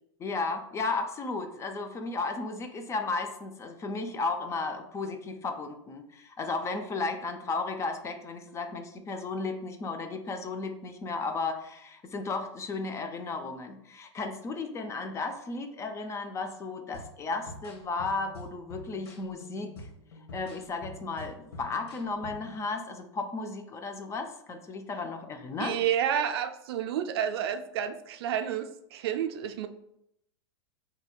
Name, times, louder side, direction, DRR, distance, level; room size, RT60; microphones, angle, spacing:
voice 1, 0.2-19.9 20.3-25.8, left 3 dB, 20° left, 6 dB, 0.4 m, -34 dB
sound 1, 16.9-22.6, left 1 dB, 60° left, 1.0 m, -47 dB
voice 2, 25.6-29.7, right 9 dB, 60° right, 9 dB, 0.4 m, -30 dB
4.1 x 2.7 x 2.3 m, 0.77 s
hypercardioid pair, 100°, 15 cm